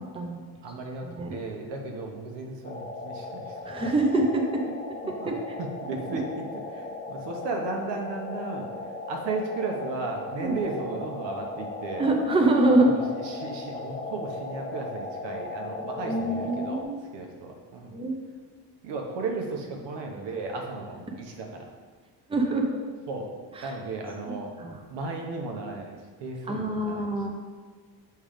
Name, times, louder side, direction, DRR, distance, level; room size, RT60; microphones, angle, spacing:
voice 1, 0.0-0.5 0.9-1.4 3.6-4.6 5.3-5.6 10.4-10.6 12.0-12.9 15.8-16.9 17.9-18.2 22.3-22.7 23.6-23.7 24.3-24.8 26.5-27.3, right 2 dB, 15° right, 1 dB, 0.7 m, -25 dB
voice 2, 0.6-3.6 5.0-5.3 5.6-8.7 9.1-12.0 12.8-16.8 17.1-18.0 18.8-21.7 23.1-23.3 23.6-24.5 24.9-27.1, right 3 dB, 75° right, 2 dB, 1.2 m, -35 dB
sound 1, 2.6-16.8, left 3 dB, 20° left, 0.7 m, -37 dB
7.5 x 3.6 x 5.1 m, 1.5 s
cardioid pair, 130°, 42 cm